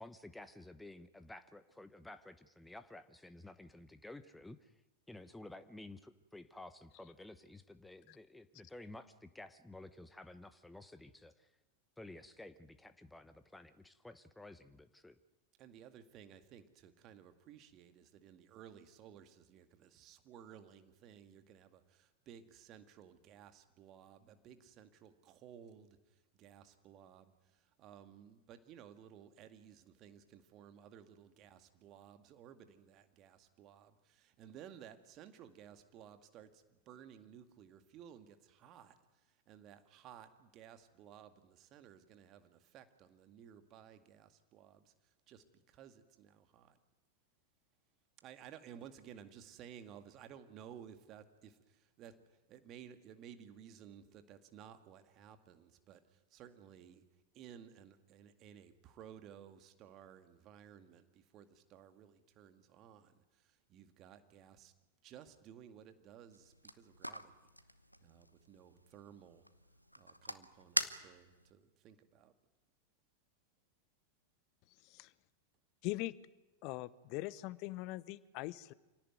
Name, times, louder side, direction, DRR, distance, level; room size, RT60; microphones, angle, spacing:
voice 1, 0.0-4.7 5.1-11.5 12.0-15.2, left 2 dB, 5° left, 12 dB, 1.0 m, -53 dB
voice 2, 15.6-26.0 26.3-46.8 48.2-57.0 57.3-64.7 65.0-67.4 68.0-69.5 70.0-72.3, right 9 dB, 35° right, 8 dB, 2.2 m, -57 dB
sound 1, 66.3-71.5, equal, 90° left, 1.1 m, -43 dB
voice 3, 75.8-76.1 76.6-78.7, left 18 dB, 45° left, 20 dB, 0.9 m, -41 dB
26.5 x 17.5 x 9.4 m, 1.1 s
figure-of-eight pair, 90°, 0 cm